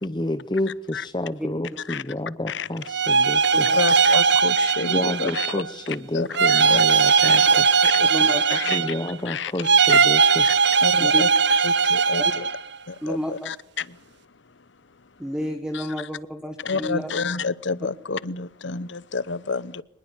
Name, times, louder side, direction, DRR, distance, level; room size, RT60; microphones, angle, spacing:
voice 1, 0.0-3.7 4.9-7.7 8.7-10.5, left 1 dB, 20° left, 0.9 m, -29 dB
sound 1, 2.9-5.7 6.3-9.1 9.6-12.6, right 5 dB, 55° right, 1.1 m, -19 dB
voice 2, 3.7-7.5 7.8-8.9 9.2-9.5 9.9-10.0 10.4-12.5 12.9-14.0 15.7-15.9 16.6-19.8, left 4 dB, 60° left, 0.9 m, -30 dB
voice 3, 8.1-8.9 11.0-11.2 12.2-12.3 13.0-13.5 15.2-17.1, equal, 5° right, 1.5 m, -31 dB
24.5 x 21.0 x 8.3 m
head